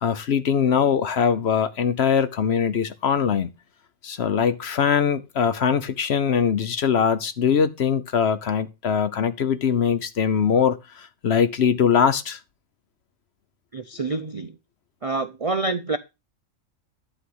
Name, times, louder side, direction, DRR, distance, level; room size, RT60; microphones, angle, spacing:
voice 1, 0.0-3.5 4.0-12.4, left 7 dB, 60° left, 0.9 m, -22 dB
voice 2, 13.7-14.6 15.0-16.0, right 3 dB, 40° right, 0.5 m, -27 dB
11.5 x 4.2 x 7.9 m
omnidirectional pair, 1.4 m